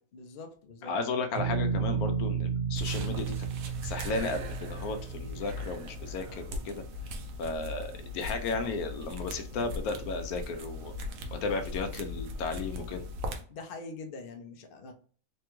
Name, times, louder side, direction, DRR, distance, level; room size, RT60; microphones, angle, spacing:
voice 1, 0.1-0.9 13.5-14.9, left 3 dB, 65° left, 5 dB, 0.5 m, -44 dB
voice 2, 0.8-3.4 3.8-6.8 7.4-10.9 11.3-13.0, left 3 dB, 85° left, 6 dB, 1.1 m, -34 dB
sound 1, 1.4-6.3, right 6 dB, 45° right, 0.9 m, -33 dB
sound 2, 2.8-13.4, left 2 dB, 75° right, 1.0 m, -39 dB
3.3 x 2.3 x 3.0 m, 0.43 s
omnidirectional pair, 1.5 m